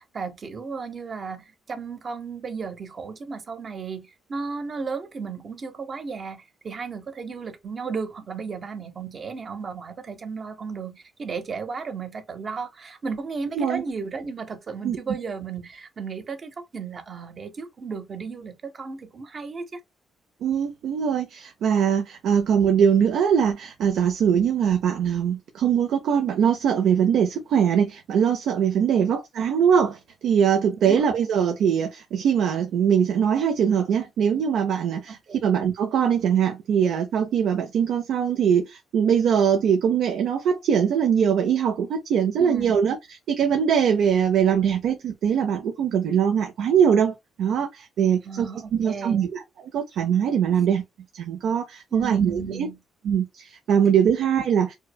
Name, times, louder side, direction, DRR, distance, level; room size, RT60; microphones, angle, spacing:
voice 1, 0.0-19.8 29.0-29.1 30.8-31.0 35.1-35.4 42.4-42.7 48.2-49.3 51.9-52.8 54.2-54.3, right 5 dB, 45° right, 0.8 m, -34 dB
voice 2, 20.4-43.0 43.3-49.4 49.7-50.8 51.1-52.7 53.0-54.7, right 8 dB, 75° right, 0.5 m, -22 dB
4.6 x 2.1 x 2.2 m
cardioid pair, 90°, 0 cm